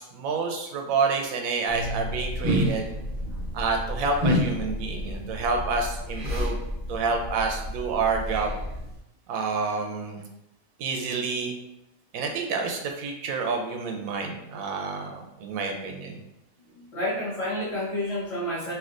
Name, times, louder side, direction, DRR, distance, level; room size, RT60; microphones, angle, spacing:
voice 1, 0.1-2.9 3.5-6.6 6.9-8.5 9.3-10.2 10.8-11.6 12.1-16.2, right 4 dB, 85° right, 3 dB, 1.0 m, -28 dB
sound 1, 1.7-9.0, equal, 40° right, 1.2 m, -30 dB
voice 2, 3.2-3.5 16.9-18.7, left 1 dB, 30° left, -10 dB, 0.7 m, -30 dB
3.3 x 2.6 x 2.4 m, 0.86 s
omnidirectional pair, 1.4 m